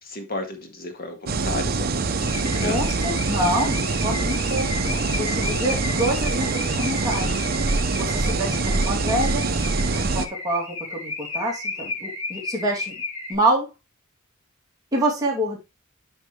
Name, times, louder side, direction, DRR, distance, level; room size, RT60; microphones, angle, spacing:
voice 1, 0.0-2.8 4.8-5.2 7.2-7.5, left 2 dB, 45° left, 1.8 m, -34 dB
sound 1, 1.3-10.3, right 3 dB, 45° right, 0.7 m, -24 dB
Car / Alarm, 2.2-13.3, left 3 dB, 80° left, 4.9 m, -34 dB
voice 2, 2.6-7.3 8.0-9.5 9.9-12.9 13.3-13.7 14.9-15.6, right 1 dB, 20° right, 2.7 m, -26 dB
9.0 x 5.2 x 3.2 m
head